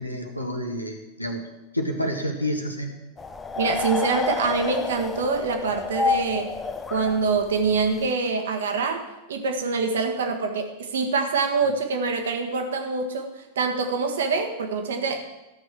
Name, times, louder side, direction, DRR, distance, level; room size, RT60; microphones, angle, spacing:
voice 1, 0.0-1.4 1.7-2.9, equal, 90° left, 3 dB, 1.7 m, -29 dB
sound 1, 3.2-8.1, left 4 dB, 15° left, 0.8 m, -29 dB
voice 2, 3.6-6.5 6.9-15.2, right 4 dB, 65° right, 5 dB, 1.6 m, -25 dB
13.5 x 6.4 x 7.5 m, 1.0 s
figure-of-eight pair, 90°, 0 cm